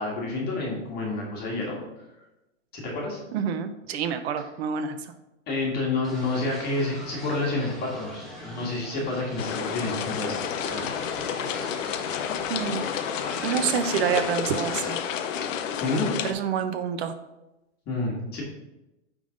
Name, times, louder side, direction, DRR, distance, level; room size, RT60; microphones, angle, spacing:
voice 1, 0.0-1.8 2.7-3.2 5.5-10.9 15.8-16.1 17.9-18.4, left 2 dB, 25° left, -3 dB, 1.7 m, -29 dB
voice 2, 3.3-5.1 12.5-12.8 13.4-15.0 16.2-17.2, right 7 dB, 55° right, 9 dB, 0.8 m, -27 dB
sound 1, 6.0-14.9, equal, ahead, 1.1 m, -41 dB
sound 2, 9.4-16.3, left 8 dB, 75° left, 0.8 m, -30 dB
9.0 x 3.8 x 3.8 m, 0.96 s
supercardioid pair, 155°, 39 cm